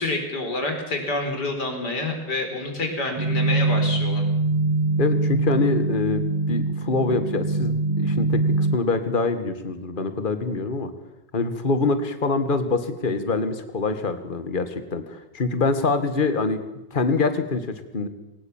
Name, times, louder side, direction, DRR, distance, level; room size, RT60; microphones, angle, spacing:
voice 1, 0.0-4.2, left 2 dB, 65° left, 4 dB, 4.9 m, -28 dB
sound 1, 3.2-8.8, right 3 dB, 25° right, 0.8 m, -23 dB
voice 2, 5.0-10.9 11.3-16.6 16.9-18.1, left 3 dB, 30° left, 10 dB, 1.8 m, -25 dB
21.5 x 19.5 x 7.3 m, 0.90 s
omnidirectional pair, 1.9 m